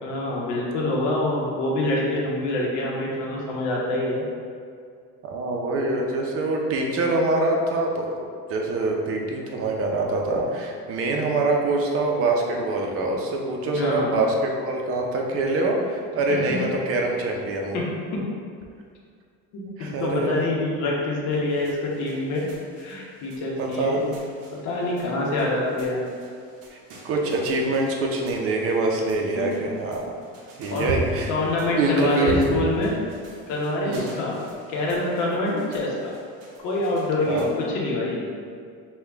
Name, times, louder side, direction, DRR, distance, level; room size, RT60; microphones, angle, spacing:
voice 1, 0.0-4.2 11.3-11.4 13.7-14.2 16.3-16.4 17.7-17.8 19.8-22.4 22.8-24.0 24.6-26.0 29.3-29.6 30.7-30.9 31.3-32.9 33.5-34.4 34.7-36.1 36.6-38.3, left 2 dB, 70° left, -4 dB, 1.0 m, -26 dB
voice 2, 5.2-17.8 19.6-20.3 23.6-24.2 26.7-26.8 27.0-30.1 30.6-31.3 31.8-32.4 33.8-34.2 37.3-37.5, right 2 dB, 50° right, 0 dB, 0.6 m, -25 dB
sound 1, 21.3-37.6, right 2 dB, 85° right, 0.9 m, -39 dB
5.6 x 2.3 x 3.4 m, 2.2 s
cardioid pair, 170°, 31 cm